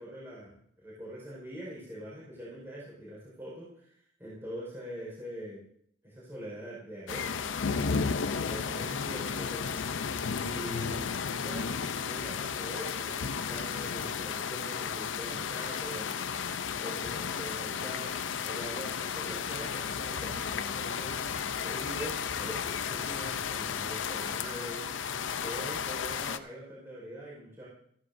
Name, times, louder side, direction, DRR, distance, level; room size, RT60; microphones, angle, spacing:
voice 1, 0.0-5.6 6.0-8.0 8.5-9.6 10.2-16.5 16.8-18.1 18.4-21.2 21.6-24.9 25.4-27.7, equal, 15° right, -8 dB, 4.7 m, -43 dB
sound 1, 7.1-26.4, left 6 dB, 85° left, 0.6 m, -33 dB
14.5 x 14.0 x 2.6 m, 0.68 s
head